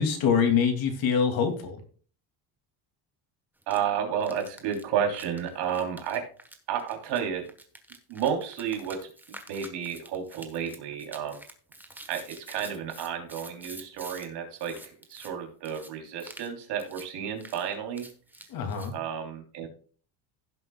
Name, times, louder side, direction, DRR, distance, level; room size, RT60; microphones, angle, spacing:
voice 1, 0.0-1.8 18.5-18.9, left 6 dB, 55° left, 5 dB, 2.5 m, -24 dB
sound 1, 3.6-3.8 4.2-14.3 14.6-15.3 15.6-15.9 16.2-16.5 16.8-17.1 17.4-18.9, right 1 dB, 5° right, 1.1 m, -47 dB
voice 2, 3.7-6.2 6.7-7.5 8.1-9.1 9.5-11.4 12.1-18.1 18.9-19.7, right 8 dB, 70° right, 3 dB, 3.3 m, -31 dB
16.0 x 7.6 x 2.3 m, 0.42 s
cardioid pair, 160°, 43 cm